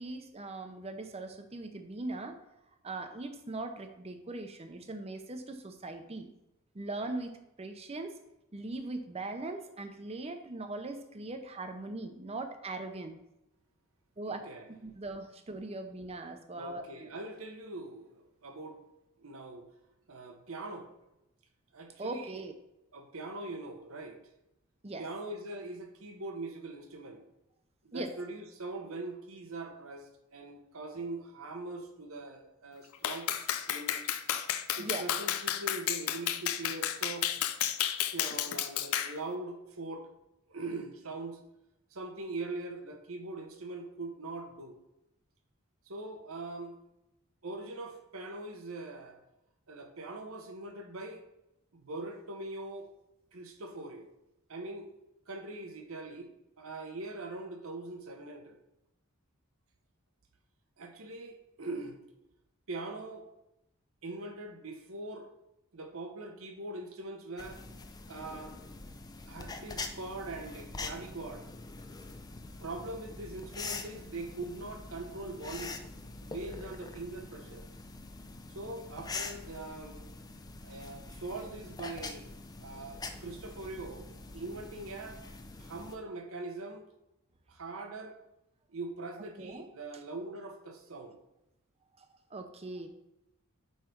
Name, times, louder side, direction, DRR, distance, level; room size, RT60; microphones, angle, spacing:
voice 1, 0.0-2.4 2.8-6.3 6.7-8.2 8.5-13.2 14.2-17.1 22.0-22.5 24.8-25.0 27.9-28.1 34.8-35.1 89.4-89.7 92.0-92.9, right 2 dB, 30° right, 7 dB, 0.6 m, -40 dB
voice 2, 14.3-14.7 16.5-18.8 19.2-19.7 20.1-20.9 21.7-22.4 22.9-24.2 25.0-27.3 27.8-33.4 33.6-34.0 34.8-37.3 38.1-40.1 40.5-41.4 41.9-44.8 45.9-46.8 47.4-49.2 49.7-51.2 51.7-52.9 53.3-54.1 54.5-54.9 55.3-58.6 60.8-62.0 62.7-63.3 64.0-65.3 65.7-67.6 68.1-68.6 69.3-71.5 72.6-75.8 76.2-77.6 78.5-80.0 80.6-82.3 82.6-85.2 85.6-86.9 87.5-88.2 88.7-91.2, right 2 dB, 75° right, 5 dB, 1.0 m, -42 dB
Clapping, 33.0-39.2, left 11 dB, 80° left, 0.4 m, -32 dB
sound 1, 67.4-86.0, left 3 dB, 20° left, 0.4 m, -44 dB
5.6 x 5.0 x 4.5 m, 0.89 s
head